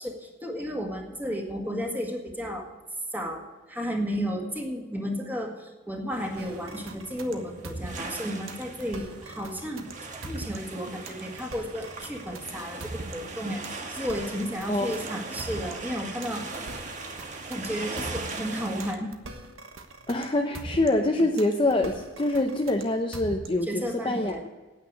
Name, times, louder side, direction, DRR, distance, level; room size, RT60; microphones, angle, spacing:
voice 1, 0.0-2.7 3.1-9.9 10.2-16.5 17.5-19.1 23.6-24.4, equal, 10° right, 1 dB, 1.8 m, -33 dB
sound 1, 6.1-18.9, right 3 dB, 40° right, 1.6 m, -40 dB
sound 2, 6.4-23.8, right 2 dB, 80° right, 1.3 m, -42 dB
voice 2, 20.1-24.5, left 2 dB, 25° left, 2 dB, 0.7 m, -25 dB
9.5 x 8.9 x 9.3 m, 1.3 s
head